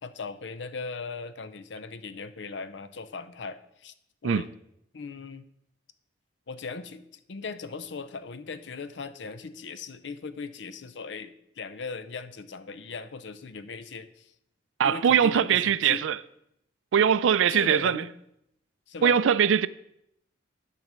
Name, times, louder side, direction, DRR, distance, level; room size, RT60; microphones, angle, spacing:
voice 1, 0.0-3.9 4.2-4.5 4.9-5.5 6.5-14.3 14.8-16.1 17.5-18.1 18.9-19.2, left 4 dB, 70° left, 0.6 m, -38 dB
voice 2, 14.8-16.2 16.9-18.0 19.0-19.7, right 8 dB, 85° right, 0.4 m, -21 dB
10.5 x 4.1 x 6.1 m
head